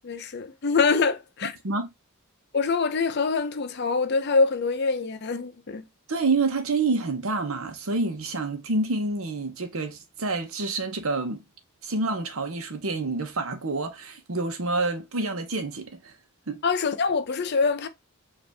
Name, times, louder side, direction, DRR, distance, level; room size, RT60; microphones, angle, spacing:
voice 1, 0.0-1.5 2.5-5.8 16.6-17.9, left 4 dB, 50° left, 0.6 m, -24 dB
voice 2, 6.1-11.4 11.8-16.1 16.5-16.6, right 3 dB, 70° right, 0.9 m, -28 dB
5.1 x 2.6 x 3.4 m
head